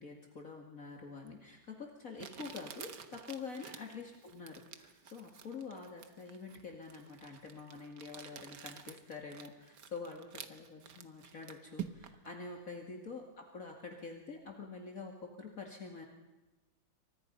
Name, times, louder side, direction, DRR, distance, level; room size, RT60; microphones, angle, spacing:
voice 1, 0.0-16.0, left 4 dB, 45° left, 2 dB, 2.5 m, -47 dB
Crumpling crinkling, 1.3-1.4 2.2-12.3, right 8 dB, 65° right, 1.8 m, -50 dB
28.0 x 25.0 x 5.4 m, 1.1 s
omnidirectional pair, 2.0 m